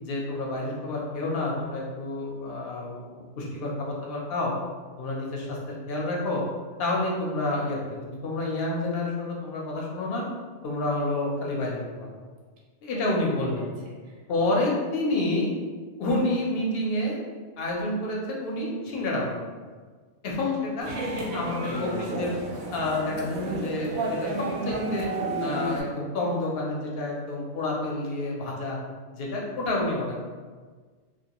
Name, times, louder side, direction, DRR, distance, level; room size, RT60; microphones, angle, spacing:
voice 1, 0.0-4.5 5.0-6.4 6.8-10.2 10.6-12.1 12.8-13.7 14.3-15.5 16.0-17.2 17.6-19.4 20.2-20.9 21.3-22.3 22.7-25.1 25.4-28.8 29.1-30.2, left 2 dB, 60° left, -2 dB, 0.8 m, -29 dB
voice 2, 13.4-14.2 20.8-21.9 29.4-29.5, right 1 dB, 80° right, -3 dB, 1.0 m, -37 dB
sound 1, 20.8-25.8, right 2 dB, 65° right, 0.7 m, -31 dB
2.4 x 2.2 x 2.8 m, 1.5 s
omnidirectional pair, 1.2 m